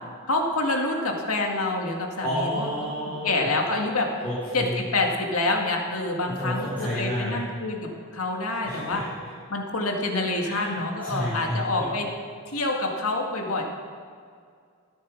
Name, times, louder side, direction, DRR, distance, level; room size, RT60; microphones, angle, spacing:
voice 1, 0.3-2.7 3.2-4.1 4.5-9.0 9.5-12.1 12.5-13.6, left 2 dB, 80° left, 1 dB, 2.0 m, -27 dB
voice 2, 2.2-3.5 4.2-4.8 6.2-7.4 8.6-9.1 10.4-10.7 11.0-11.9, equal, 10° left, -12 dB, 4.3 m, -30 dB
14.0 x 9.4 x 6.4 m, 2.1 s
head